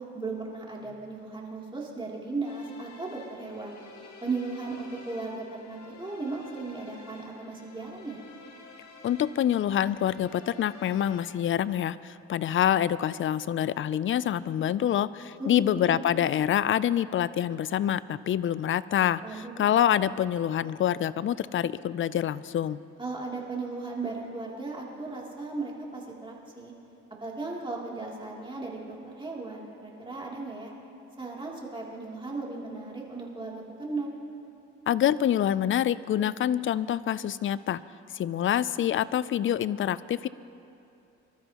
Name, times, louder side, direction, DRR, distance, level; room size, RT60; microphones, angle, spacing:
voice 1, 0.0-3.7 4.2-8.2 15.4-15.7 19.2-19.6 23.0-26.7 27.2-30.7 31.2-34.1, right 3 dB, 15° right, -3 dB, 2.9 m, -36 dB
sound 1, 2.4-11.3, left 4 dB, 65° left, 1.8 m, -50 dB
voice 2, 9.0-22.8 34.9-37.8 38.1-40.3, left 10 dB, 45° left, 17 dB, 0.4 m, -26 dB
25.5 x 13.0 x 3.0 m, 2.8 s
cardioid pair, 90°, 30 cm